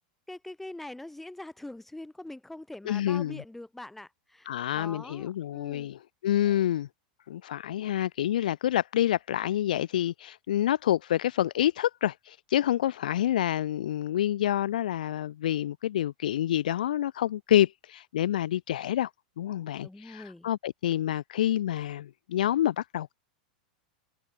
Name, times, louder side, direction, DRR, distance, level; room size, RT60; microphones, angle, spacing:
voice 1, 0.3-5.9 6.4-6.6 19.8-20.5, left 1 dB, 5° left, 0.8 m, -43 dB
voice 2, 2.9-3.4 4.5-6.9 7.3-19.1 19.4-23.1, left 12 dB, 90° left, 0.3 m, -28 dB
supercardioid pair, 125°, 4 cm